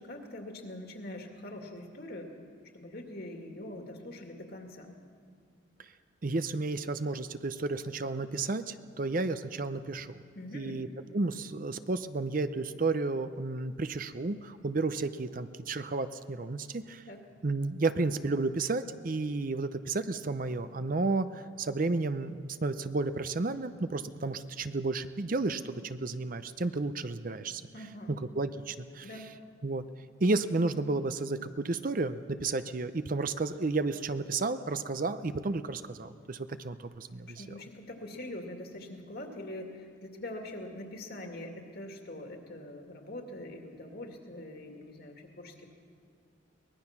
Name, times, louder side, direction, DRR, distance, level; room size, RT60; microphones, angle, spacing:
voice 1, 0.0-2.3 2.7-4.9 10.3-10.7 17.1-17.2 27.7-28.1 29.0-29.3 37.2-45.7, left 1 dB, 50° left, 3 dB, 2.3 m, -43 dB
voice 2, 6.2-10.2 10.5-10.9 11.1-17.0 17.4-27.6 28.1-29.1 29.6-29.9 30.2-37.4, right 3 dB, 45° right, 11 dB, 0.6 m, -32 dB
23.5 x 20.0 x 5.9 m, 2.1 s
head